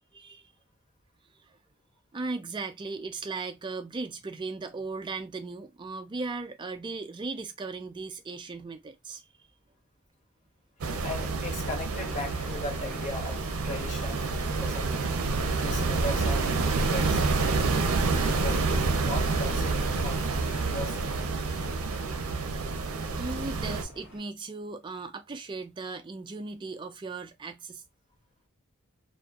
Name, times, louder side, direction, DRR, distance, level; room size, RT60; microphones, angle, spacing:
voice 1, 0.1-0.5 2.1-9.2 16.8-17.1 18.6-18.7 23.2-27.8, right 3 dB, 20° right, 0.3 m, -37 dB
sound 1, 10.8-23.8, right 3 dB, 85° right, 0.5 m, -28 dB
voice 2, 11.0-15.0 15.5-17.6 18.3-20.2 20.7-21.2, left 2 dB, 35° left, 0.9 m, -38 dB
sound 2, 11.9-24.2, left 1 dB, 80° left, 1.3 m, -47 dB
2.5 x 2.3 x 2.3 m
head